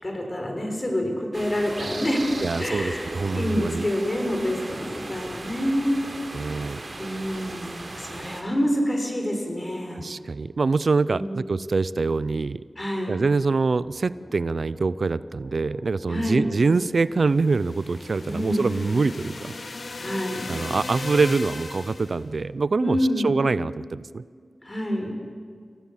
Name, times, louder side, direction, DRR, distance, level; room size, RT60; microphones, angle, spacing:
voice 1, 0.0-6.0 7.0-10.0 11.1-11.4 12.8-13.1 16.1-16.5 18.2-18.8 20.0-20.5 22.7-23.3 24.6-25.1, equal, 35° left, 2 dB, 6.0 m, -27 dB
sound 1, 1.3-8.4, right 2 dB, 50° right, 3.8 m, -37 dB
voice 2, 2.4-3.9 6.3-6.8 9.9-12.6 13.1-19.5 20.5-23.0 23.2-24.2, right 4 dB, 70° right, 17 dB, 0.5 m, -24 dB
sound 2, 13.8-20.2, equal, 10° left, 5.9 m, -47 dB
sound 3, 17.3-22.2, left 3 dB, 65° left, 1.6 m, -37 dB
26.0 x 17.0 x 7.4 m, 2.2 s
cardioid pair, 50°, 0 cm